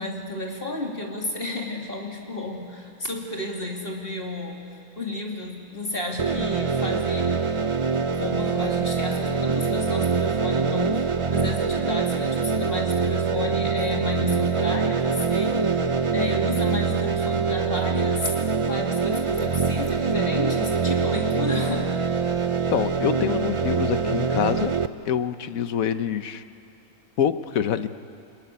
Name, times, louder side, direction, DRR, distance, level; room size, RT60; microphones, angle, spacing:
voice 1, 0.0-4.6 5.0-7.4 8.1-18.3 18.6-21.9, left 2 dB, 40° left, 0 dB, 2.8 m, -32 dB
sound 1, 6.2-24.9, right 5 dB, 35° right, 0.5 m, -24 dB
voice 2, 22.7-24.7 25.0-26.4 27.2-27.9, left 8 dB, 85° left, 11 dB, 1.3 m, -25 dB
24.5 x 22.0 x 9.9 m, 2.5 s
omnidirectional pair, 1.4 m